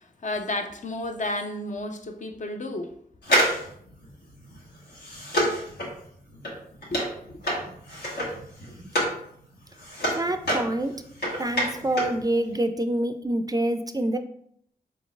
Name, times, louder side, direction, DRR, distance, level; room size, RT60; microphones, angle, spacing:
voice 1, 0.0-2.9 6.9-7.4 10.7-10.8 12.7-12.9, left 1 dB, 50° left, 5 dB, 0.5 m, -32 dB
sound 1, 3.2-9.2 9.5-12.2 12.5-12.6, equal, 85° left, 1.3 m, -28 dB
voice 2, 10.2-10.9 11.4-14.2, right 1 dB, 25° right, 8 dB, 0.4 m, -26 dB
4.4 x 3.8 x 2.4 m, 0.67 s
cardioid pair, 55°, 16 cm